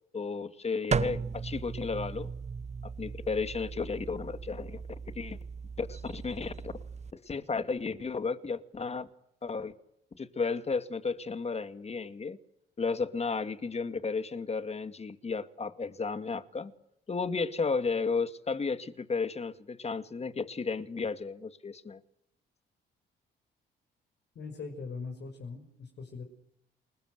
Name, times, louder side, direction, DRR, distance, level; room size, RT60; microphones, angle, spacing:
voice 1, 0.1-2.3 2.8-4.8 5.2-5.4 5.8-6.8 7.2-9.1 9.4-9.7 10.2-12.4 12.8-16.7 17.1-22.0, left 4 dB, 30° left, 2.2 m, -33 dB
sound 1, 0.9-7.1, right 5 dB, 35° right, 1.2 m, -37 dB
voice 2, 24.3-26.2, left 4 dB, 60° left, 6.2 m, -41 dB
29.0 x 21.0 x 8.0 m
cardioid pair, 90°, 20 cm